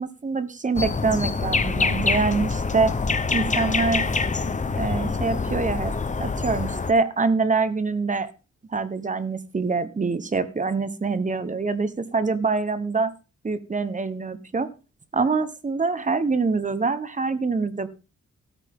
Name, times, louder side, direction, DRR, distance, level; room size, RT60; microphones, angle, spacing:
voice 1, 0.0-2.9 3.3-4.1 4.8-5.9 6.2-8.3 8.7-13.1 13.4-14.7 15.1-17.9, right 4 dB, 25° right, 12 dB, 1.1 m, -25 dB
sound 1, 0.7-6.9, left 4 dB, 25° left, 0.9 m, -25 dB
13.5 x 13.5 x 3.7 m, 0.32 s
wide cardioid pair, 175°, 29 cm